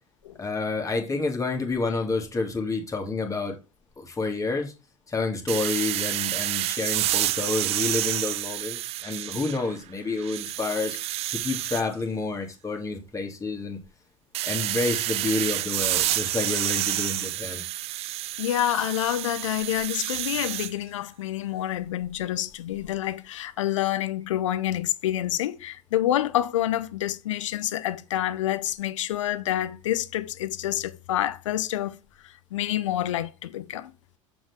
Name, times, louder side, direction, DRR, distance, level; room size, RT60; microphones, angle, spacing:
voice 1, 0.4-3.6 4.0-4.7 5.1-11.0 11.3-13.8 14.4-17.6, left 3 dB, 20° left, 2.3 m, -29 dB
sound 1, 5.5-9.8 10.2-11.8 14.3-20.7, right 15 dB, 40° right, 0.4 m, -29 dB
voice 2, 18.4-32.0 32.2-33.9, left 13 dB, 65° left, 0.7 m, -28 dB
7.6 x 7.2 x 3.5 m
figure-of-eight pair, 70°, 17 cm